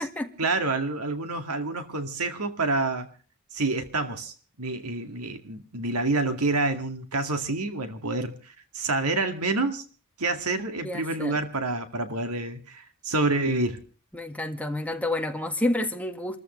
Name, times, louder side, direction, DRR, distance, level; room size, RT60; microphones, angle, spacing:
voice 1, 0.4-3.1 3.5-9.8 10.2-13.8, right 2 dB, 80° right, 2.3 m, -28 dB
voice 2, 10.8-11.4 14.1-16.4, left 1 dB, 5° left, 1.8 m, -29 dB
28.0 x 14.0 x 3.3 m
head